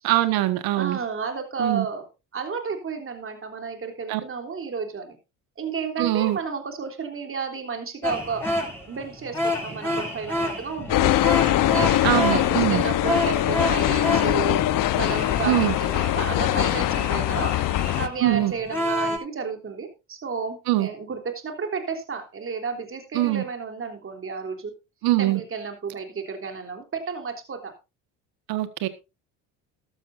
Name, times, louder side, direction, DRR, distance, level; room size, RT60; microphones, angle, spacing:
voice 1, 0.0-1.0 1.6-1.8 4.1-4.2 6.0-6.4 12.0-12.8 15.4-15.7 18.2-18.5 20.7-20.9 23.1-23.4 25.0-25.4 28.5-28.9, right 16 dB, 75° right, 1.6 m, -22 dB
voice 2, 0.7-2.0 2.3-5.2 5.6-8.4 8.9-11.1 11.7-14.6 14.9-17.5 18.0-24.7 25.2-27.7, right 5 dB, 35° right, 3.4 m, -32 dB
sound 1, 8.0-19.2, left 1 dB, 5° left, 7.8 m, -30 dB
sound 2, 10.9-18.1, left 14 dB, 60° left, 1.0 m, -22 dB
13.5 x 12.5 x 2.6 m
supercardioid pair, 75°, 36 cm